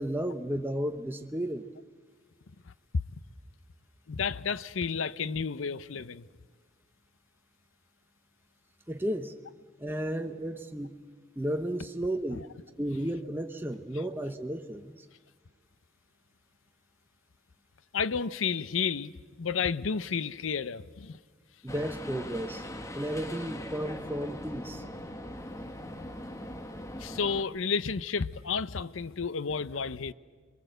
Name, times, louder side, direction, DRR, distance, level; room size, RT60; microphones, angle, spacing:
voice 1, 0.0-1.7 8.9-9.4 9.8-10.9 11.4-12.4 12.8-15.1 21.6-22.7 22.9-24.8, right 1 dB, 10° right, 0.8 m, -33 dB
voice 2, 4.1-6.2 12.3-12.5 17.9-19.1 19.4-21.2 27.0-30.1, left 5 dB, 85° left, 0.7 m, -31 dB
sound 1, 21.7-27.4, left 1 dB, 15° left, 1.3 m, -40 dB
28.0 x 22.0 x 7.9 m
head